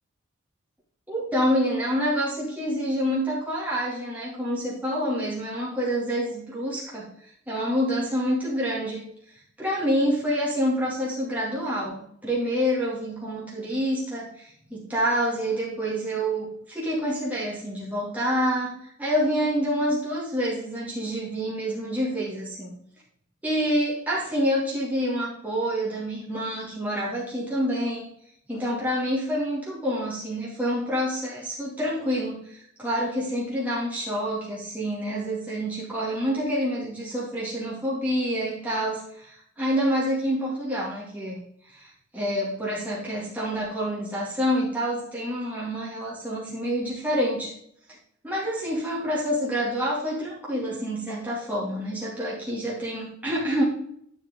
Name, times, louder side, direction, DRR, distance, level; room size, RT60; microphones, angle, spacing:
voice 1, 1.1-9.0 9.6-22.7 23.4-28.1 28.5-47.5 48.2-53.6, equal, 10° right, -7 dB, 2.4 m, -27 dB
11.0 x 7.0 x 3.7 m, 0.69 s
head